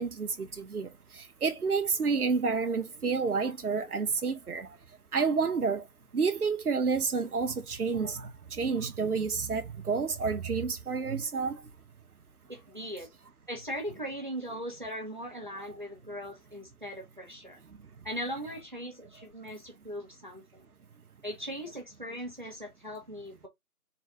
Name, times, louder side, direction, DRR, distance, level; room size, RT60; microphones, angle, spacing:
voice 1, 0.0-4.7 5.1-5.9 6.1-11.6 15.6-15.7, right 5 dB, 80° right, 0.9 m, -30 dB
voice 2, 12.5-13.1 13.5-17.6 18.0-20.6 21.2-23.5, equal, 30° right, 1.1 m, -39 dB
4.0 x 2.5 x 4.3 m
figure-of-eight pair, 175°, 45 cm